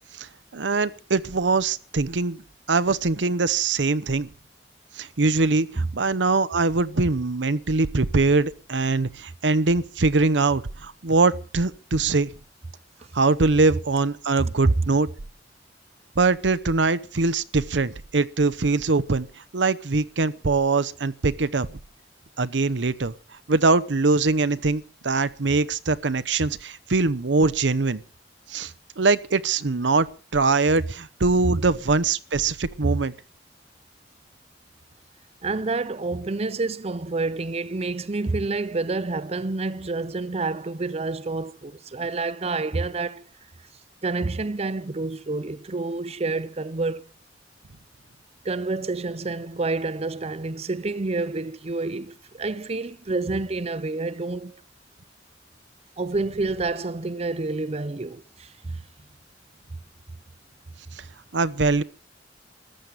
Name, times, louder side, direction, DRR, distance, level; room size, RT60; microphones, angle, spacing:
voice 1, 0.1-2.4 2.7-4.3 4.9-12.3 13.1-15.1 16.2-21.7 22.4-23.1 23.5-28.0 28.5-33.1 61.0-61.1 61.3-61.8, right 3 dB, 85° right, 0.8 m, -22 dB
voice 2, 35.4-43.3 44.0-47.0 48.4-54.6 56.0-58.8, right 3 dB, 35° right, 0.7 m, -28 dB
14.0 x 9.1 x 8.5 m
head